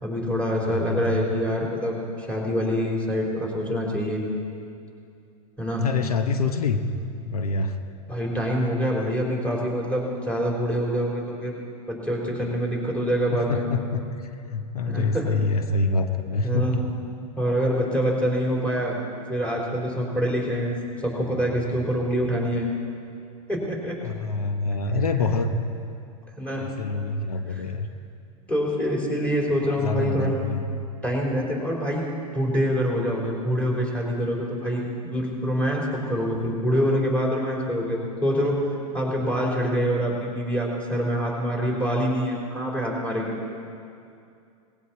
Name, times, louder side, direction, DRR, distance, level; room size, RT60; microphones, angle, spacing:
voice 1, 0.0-4.2 5.6-5.8 8.1-11.5 11.9-13.6 14.9-15.3 16.4-16.8 17.4-19.0 19.3-22.7 23.5-24.0 25.0-25.3 26.4-26.7 27.5-27.6 28.5-30.3 31.0-32.1 32.3-43.5, equal, 5° left, -3 dB, 4.2 m, -25 dB
voice 2, 0.6-1.2 5.8-6.8 7.2-7.8 13.3-16.7 24.0-25.5 26.6-27.9 29.6-30.7, left 3 dB, 90° left, 8 dB, 0.9 m, -26 dB
19.5 x 15.5 x 4.4 m, 2.5 s
hypercardioid pair, 105°, 19 cm